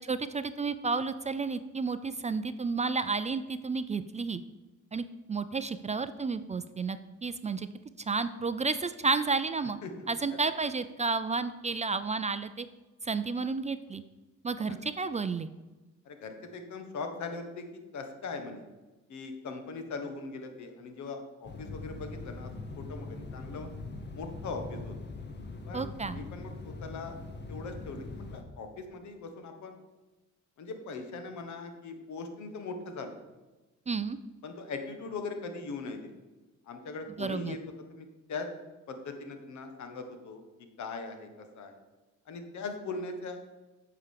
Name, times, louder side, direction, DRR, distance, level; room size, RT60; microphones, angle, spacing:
voice 1, 0.0-4.4 4.9-7.7 8.0-9.8 10.1-12.7 13.0-14.0 14.4-15.5 25.7-26.2 33.9-34.2 37.2-37.5, right 4 dB, 25° right, 12 dB, 0.4 m, -31 dB
voice 2, 9.8-10.4 14.6-14.8 16.0-17.7 17.9-18.6 19.1-22.5 22.8-23.7 24.1-24.9 25.6-27.2 27.5-29.8 30.6-33.2 34.4-36.1 36.7-37.6 37.9-38.5 38.9-40.4 40.8-41.8 42.3-43.4, left 3 dB, 70° left, 6 dB, 1.4 m, -40 dB
sound 1, 21.4-28.4, left 3 dB, 35° left, 1.1 m, -42 dB
8.8 x 5.0 x 6.6 m, 1.1 s
cardioid pair, 90°, 30 cm